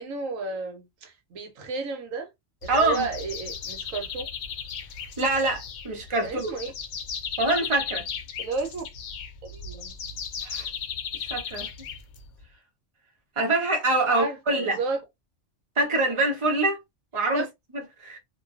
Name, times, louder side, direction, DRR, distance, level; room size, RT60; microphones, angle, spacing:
voice 1, 0.0-2.3 2.6-4.3 6.2-6.7 8.4-8.8 9.4-10.0 14.0-15.0 17.3-17.5, right 3 dB, 85° right, 1.2 m, -32 dB
sound 1, 2.6-12.4, left 7 dB, 70° left, 0.9 m, -36 dB
voice 2, 2.7-3.1 5.2-6.5 7.4-8.0 10.4-10.7 11.1-11.7 13.4-14.8 15.8-16.8 17.1-17.4 18.0-18.2, right 2 dB, 30° right, 0.7 m, -24 dB
2.5 x 2.3 x 2.3 m
omnidirectional pair, 1.3 m